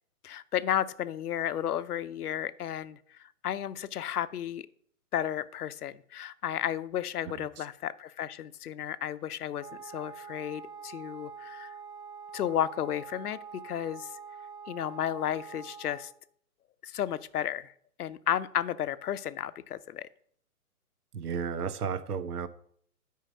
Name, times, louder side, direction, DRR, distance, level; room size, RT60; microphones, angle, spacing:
voice 1, 0.2-4.7 5.1-11.7 12.3-14.1 14.7-16.1 16.8-17.7 18.0-20.1, left 10 dB, 80° left, 0.7 m, -33 dB
Wind instrument woodwind instrument, 9.5-16.2, right 6 dB, 20° right, 0.9 m, -45 dB
voice 2, 21.1-22.5, right 6 dB, 85° right, 0.8 m, -33 dB
9.3 x 5.2 x 5.2 m
hypercardioid pair, 145°, 45 cm